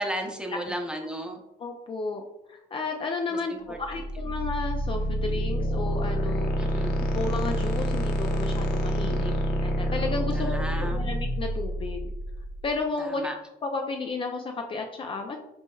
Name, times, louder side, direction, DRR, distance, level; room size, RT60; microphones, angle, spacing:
voice 1, 0.0-1.4 3.3-3.8 6.6-7.1 9.0-9.5 10.3-11.0 13.0-13.4, right 1 dB, 5° right, 3 dB, 0.7 m, -34 dB
voice 2, 1.6-2.2 2.5-6.5 7.1-9.3 9.6-12.1 12.6-13.3 13.6-15.4, left 3 dB, 30° left, 3 dB, 0.4 m, -32 dB
sound 1, 3.8-12.7, equal, 70° left, 0.8 m, -28 dB
6.0 x 3.3 x 2.3 m, 0.93 s
cardioid pair, 110°, 17 cm